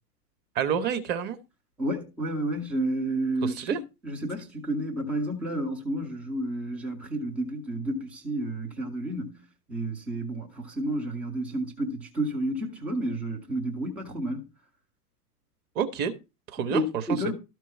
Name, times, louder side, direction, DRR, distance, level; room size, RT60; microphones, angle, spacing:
voice 1, 0.5-1.4 3.4-3.8 15.7-16.1 16.5-16.8 17.1-17.2, right 8 dB, 20° right, 0.9 m, -28 dB
voice 2, 1.8-9.4 9.7-14.4 16.6-17.3, right 1 dB, 5° right, 0.4 m, -31 dB
12.5 x 4.6 x 4.4 m
figure-of-eight pair, 100°, 47 cm